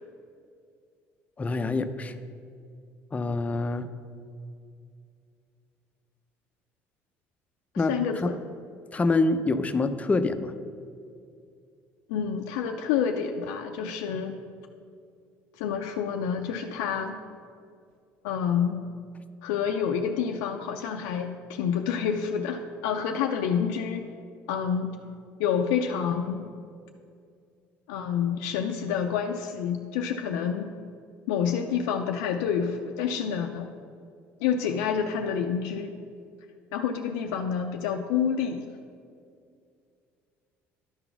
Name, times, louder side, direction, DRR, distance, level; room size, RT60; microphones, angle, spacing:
voice 1, 1.4-2.1 3.1-3.9 7.8-7.9 8.2-8.3 8.9-10.5, left 3 dB, 25° left, 10 dB, 0.5 m, -25 dB
voice 2, 7.9-8.4 12.1-14.4 15.6-17.2 18.2-18.8 19.4-24.1 24.5-24.9 25.4-26.5 27.9-30.7 31.3-33.7 34.4-36.0 36.7-38.6, left 7 dB, 85° left, 3 dB, 0.4 m, -28 dB
11.0 x 3.9 x 5.9 m, 2.4 s
supercardioid pair, 85°, 6 cm